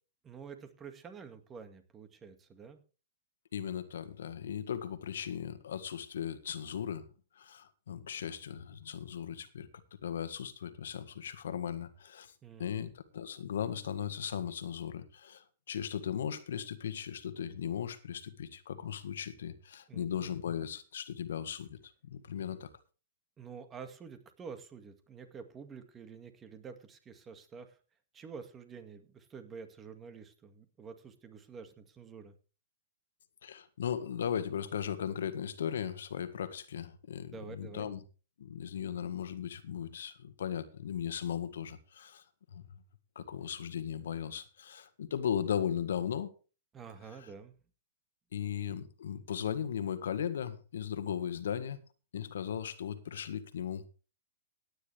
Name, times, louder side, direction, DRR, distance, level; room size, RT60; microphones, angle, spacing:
voice 1, 0.2-2.8 12.4-12.9 19.9-20.3 23.4-27.8 28.1-32.4 37.3-37.9 46.7-47.5, right 6 dB, 20° right, 2.1 m, -48 dB
voice 2, 3.5-7.0 7.4-9.7 10.0-12.3 12.6-22.7 33.4-38.0 38.4-42.2 42.5-42.6 43.1-46.3 47.2-47.3 48.3-51.8 52.1-53.8, left 8 dB, 75° left, 1.6 m, -37 dB
17.0 x 9.9 x 3.4 m
hypercardioid pair, 140°, 0 cm